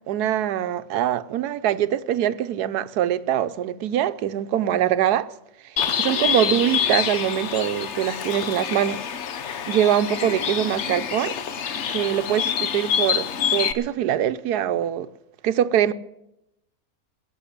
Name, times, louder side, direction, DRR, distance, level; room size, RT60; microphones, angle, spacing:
voice 1, 0.1-5.3 6.0-9.0 9.7-11.4 11.9-15.1 15.4-15.9, right 11 dB, 85° right, 1.2 m, -23 dB
Bird, 5.8-13.7, left 8 dB, 55° left, 1.0 m, -26 dB
17.0 x 7.3 x 9.9 m
omnidirectional pair, 1.6 m